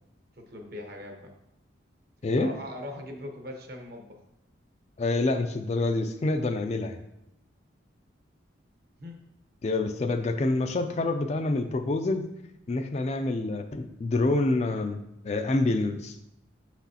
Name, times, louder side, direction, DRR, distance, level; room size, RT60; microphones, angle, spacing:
voice 1, 0.4-1.4 2.4-4.2 9.0-9.2, left 1 dB, 50° right, 3 dB, 0.9 m, -40 dB
voice 2, 5.0-7.0 9.6-12.2 12.7-16.2, left 2 dB, 35° left, 7 dB, 0.3 m, -27 dB
6.3 x 6.0 x 2.8 m, 0.84 s
head